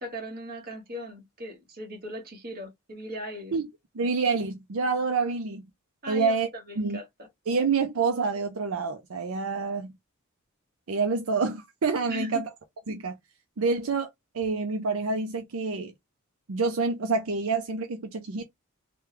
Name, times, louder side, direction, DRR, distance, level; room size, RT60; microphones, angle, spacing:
voice 1, 0.0-3.6 6.0-6.4 6.7-7.3 12.1-12.4, equal, 45° right, 1.4 m, -38 dB
voice 2, 3.9-5.6 6.1-6.5 6.8-7.0 7.5-9.9 10.9-12.5 12.9-13.2 13.6-14.1 14.3-15.9 16.5-18.4, right 4 dB, 75° right, 0.6 m, -27 dB
3.3 x 2.3 x 3.3 m
head